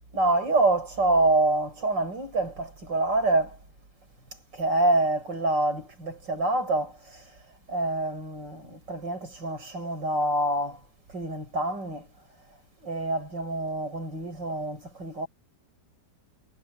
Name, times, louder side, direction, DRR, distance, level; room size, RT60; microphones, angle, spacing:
voice 1, 0.1-3.6 4.5-7.2 7.7-10.8 11.1-12.1 12.8-15.3, right 2 dB, 85° right, 7.2 m, -26 dB
omnidirectional pair, 1.9 m